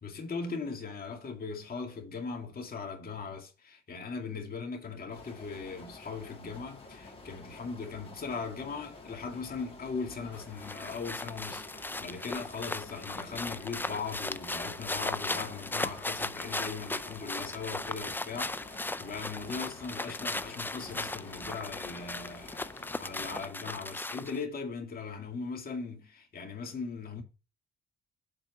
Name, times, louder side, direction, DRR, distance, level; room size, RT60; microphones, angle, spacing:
voice 1, 0.0-27.2, left 4 dB, 45° left, 2.2 m, -39 dB
sound 1, 5.1-23.5, left 3 dB, 30° left, 3.2 m, -50 dB
sound 2, 10.3-24.4, left 2 dB, 10° left, 0.5 m, -37 dB
7.5 x 4.4 x 5.8 m
cardioid pair, 80°, 21 cm